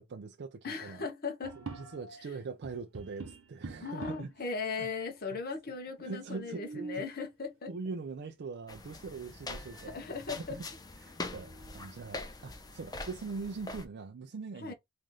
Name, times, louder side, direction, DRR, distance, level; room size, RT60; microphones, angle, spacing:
voice 1, 0.0-1.1 1.6-4.3 4.8-4.9 5.3-5.4 6.0-7.1 7.7-10.0 10.3-10.7 11.0-14.7, right 4 dB, 50° right, 0.4 m, -42 dB
voice 2, 0.6-1.6 3.8-7.7 9.8-10.6 14.6-14.7, left 4 dB, 45° left, 0.8 m, -38 dB
sound 1, 1.4-2.3 2.6-4.4 5.2-5.3 5.5-5.6 6.3-7.2 8.9-9.0 9.5-10.0 10.4-10.5 11.0-11.9, right 3 dB, 70° right, 1.1 m, -46 dB
sound 2, 8.7-13.9, left 2 dB, 15° left, 0.5 m, -43 dB
3.1 x 2.6 x 3.7 m
head